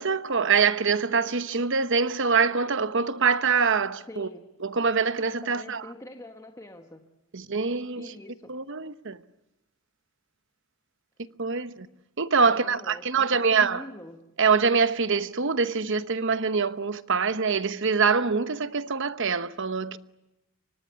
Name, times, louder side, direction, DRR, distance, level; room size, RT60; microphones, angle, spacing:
voice 1, 0.0-4.3 4.6-5.8 7.3-8.1 8.5-9.2 11.4-11.9 12.2-13.8 14.4-20.0, right 5 dB, 55° right, 1.0 m, -24 dB
voice 2, 4.1-4.5 5.4-7.0 7.9-8.5 12.4-14.3, left 1 dB, 15° left, 1.4 m, -44 dB
29.5 x 24.5 x 8.2 m
head